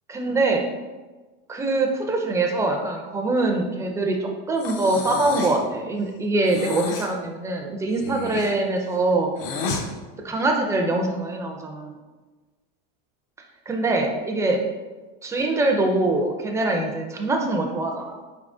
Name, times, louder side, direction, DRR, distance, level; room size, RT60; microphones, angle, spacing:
voice 1, 0.1-0.6 1.5-9.3 10.2-11.9 13.7-14.6 15.2-18.2, right 2 dB, 10° right, 2 dB, 0.4 m, -23 dB
Breathing, 4.6-5.7 6.4-7.1 7.9-9.9, left 4 dB, 60° left, 0.7 m, -31 dB
4.6 x 3.5 x 2.5 m, 1.3 s
supercardioid pair, 140°, 30 cm